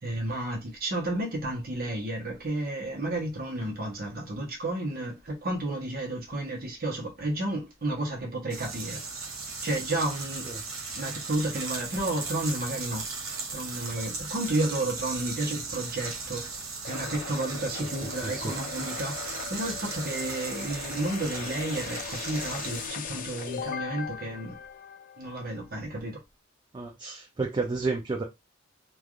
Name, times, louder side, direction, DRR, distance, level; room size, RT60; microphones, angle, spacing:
voice 1, 0.0-9.0 9.6-10.5 10.9-16.6 16.9-24.6 25.2-26.2, right 1 dB, 50° right, 0.9 m, -32 dB
sound 1, 8.5-22.9, right 4 dB, 90° right, 0.9 m, -37 dB
sound 2, 16.8-25.5, left 7 dB, 40° left, 0.4 m, -39 dB
voice 2, 17.8-18.5 26.7-28.2, right 3 dB, 25° right, 0.4 m, -32 dB
3.2 x 2.3 x 2.4 m
head